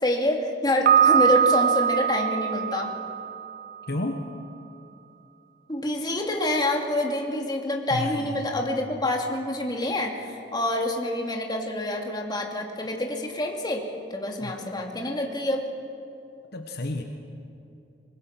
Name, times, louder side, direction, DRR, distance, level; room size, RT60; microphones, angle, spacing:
voice 1, 0.0-2.9 5.7-15.7, left 1 dB, 25° left, 1 dB, 2.5 m, -27 dB
Piano, 0.9-3.7, right 8 dB, 50° right, 0.7 m, -22 dB
voice 2, 3.9-4.2 7.9-8.5 14.4-14.5 16.5-17.0, left 2 dB, 60° left, 4 dB, 1.3 m, -31 dB
25.0 x 21.5 x 6.0 m, 2.8 s
head